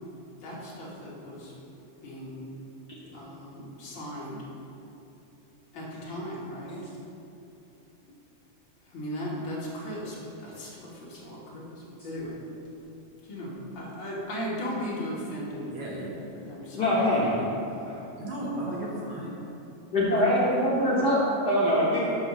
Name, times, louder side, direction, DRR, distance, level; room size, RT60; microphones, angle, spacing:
voice 1, 0.3-2.5 3.1-4.4 5.7-6.8 8.9-12.4 13.2-17.6, equal, 45° left, -6 dB, 2.1 m, -37 dB
voice 2, 15.7-16.2 18.2-19.4 20.1-20.2, right 1 dB, 55° right, -3 dB, 1.6 m, -35 dB
voice 3, 16.7-17.3 17.8-18.0 19.9-22.0, equal, 75° left, -7 dB, 0.9 m, -23 dB
7.1 x 6.1 x 6.2 m, 2.8 s
omnidirectional pair, 3.7 m